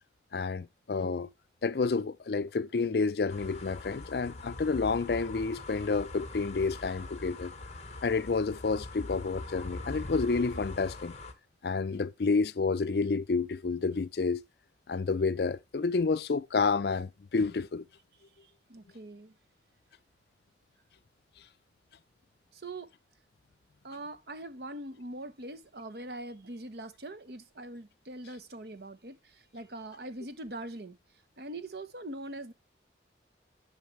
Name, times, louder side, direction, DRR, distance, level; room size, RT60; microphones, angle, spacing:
voice 1, 0.3-1.3 1.6-7.5 8.0-11.2 11.6-14.4 14.9-17.8, left 4 dB, 60° left, 0.5 m, -29 dB
sound 1, 3.3-11.3, left 2 dB, 40° left, 1.2 m, -42 dB
voice 2, 18.4-19.3 22.5-22.9 23.8-31.0 31.4-32.5, right 1 dB, 60° right, 1.0 m, -42 dB
11.0 x 5.8 x 3.2 m
head